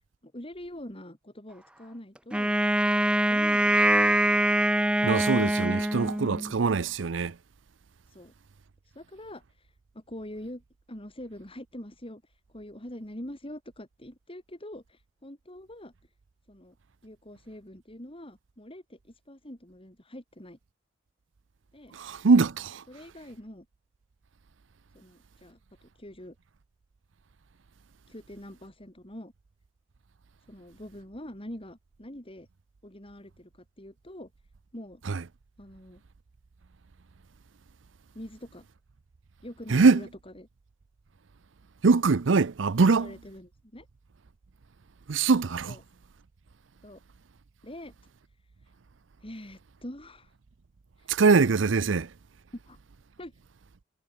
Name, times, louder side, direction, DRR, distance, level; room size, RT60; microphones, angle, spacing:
voice 1, 0.2-2.5 3.3-3.8 5.6-6.0 8.1-8.3 8.9-10.6 10.9-15.9 16.5-16.7 17.0-20.6 21.7-21.9 22.9-23.7 24.9-26.3 28.1-29.3 30.5-32.5 32.8-34.3 34.7-35.0 35.6-36.0 38.1-38.7 39.4-40.5 42.8-43.9 45.7-45.8 46.8-47.0 47.6-47.9 49.2-50.3 51.0-51.2 52.5-52.8 53.2-53.3, left 1 dB, 30° left, 5.2 m, -44 dB
Wind instrument woodwind instrument, 2.3-6.5, right 1 dB, 5° right, 0.7 m, -24 dB
voice 2, 5.0-7.4 21.9-22.8 35.1-35.2 39.7-40.0 41.8-43.1 45.1-45.7 51.1-52.1, right 4 dB, 85° right, 0.6 m, -22 dB
head